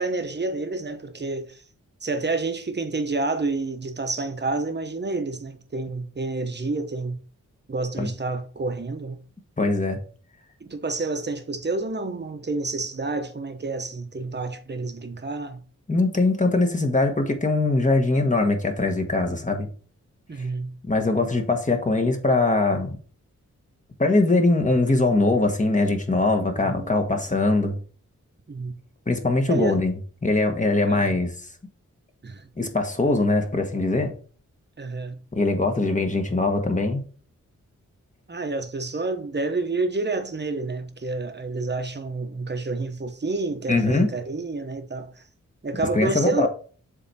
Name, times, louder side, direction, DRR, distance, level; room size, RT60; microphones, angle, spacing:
voice 1, 0.0-1.6 2.0-7.2 7.7-9.2 10.6-15.6 20.3-20.7 26.6-26.9 28.5-28.8 29.5-29.8 30.9-31.2 32.2-32.5 34.8-35.2 38.3-45.2 45.6-46.5, right 3 dB, 35° right, 1.0 m, -29 dB
voice 2, 9.6-10.0 15.9-19.7 20.8-23.0 24.0-27.8 29.1-29.9 30.2-31.3 32.6-34.1 35.3-37.0 43.7-44.1 45.9-46.5, left 2 dB, 25° left, 1.3 m, -22 dB
7.5 x 3.4 x 4.2 m
wide cardioid pair, 75°, 31 cm